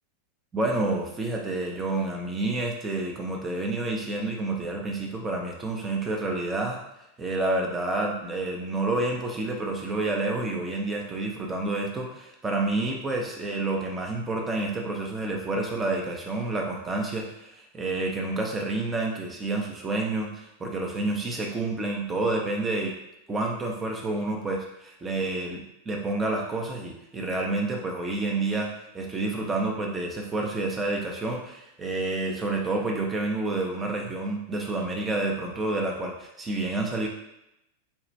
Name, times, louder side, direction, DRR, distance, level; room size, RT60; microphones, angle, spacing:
voice 1, 0.5-6.8 7.2-22.9 23.3-28.7 28.9-37.1, right 2 dB, 15° right, 0 dB, 0.7 m, -29 dB
4.3 x 2.4 x 3.2 m, 0.85 s
figure-of-eight pair, 90°, 0 cm